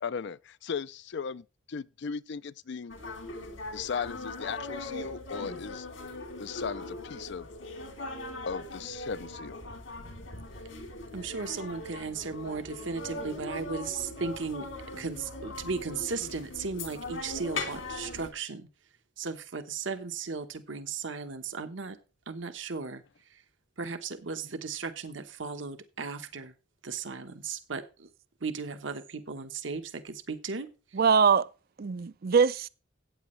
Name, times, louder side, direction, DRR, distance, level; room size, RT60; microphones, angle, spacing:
voice 1, 0.0-3.0 3.7-5.9 6.4-7.5 8.5-9.6, left 6 dB, 60° left, 0.4 m, -37 dB
sound 1, 2.9-18.3, left 2 dB, 85° left, 3.3 m, -40 dB
voice 2, 11.1-18.7 19.2-22.0 22.3-23.4 23.8-26.5 26.8-28.1 28.4-31.0, right 4 dB, 70° right, 1.2 m, -36 dB
voice 3, 31.0-31.5 31.8-32.7, right 6 dB, 50° right, 0.5 m, -22 dB
14.0 x 8.7 x 3.2 m
head